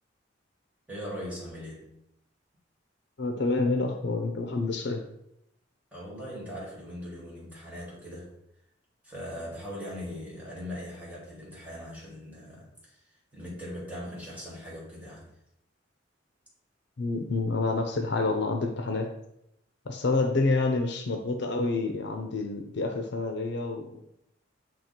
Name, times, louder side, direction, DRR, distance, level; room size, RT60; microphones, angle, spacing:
voice 1, 0.9-1.9 5.9-8.4 9.0-13.0 13.3-15.3, equal, 10° right, -6 dB, 2.3 m, -40 dB
voice 2, 3.2-5.0 17.0-19.1 19.9-24.0, left 3 dB, 65° left, 5 dB, 0.6 m, -28 dB
7.4 x 2.9 x 4.3 m, 0.81 s
head